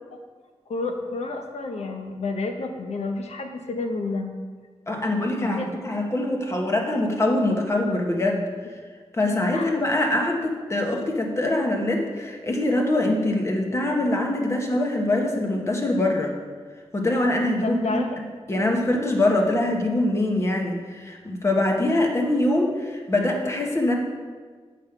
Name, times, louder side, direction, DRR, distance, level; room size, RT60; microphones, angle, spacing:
voice 1, 0.7-4.3 5.4-5.7 9.5-9.7 17.6-18.1 18.5-18.6, left 3 dB, 85° left, 4 dB, 1.0 m, -30 dB
voice 2, 4.9-8.7 9.1-16.3 16.9-18.0 18.5-24.0, left 1 dB, 25° left, 1 dB, 1.1 m, -23 dB
9.1 x 5.1 x 5.9 m, 1.5 s
wide cardioid pair, 175°, 11 cm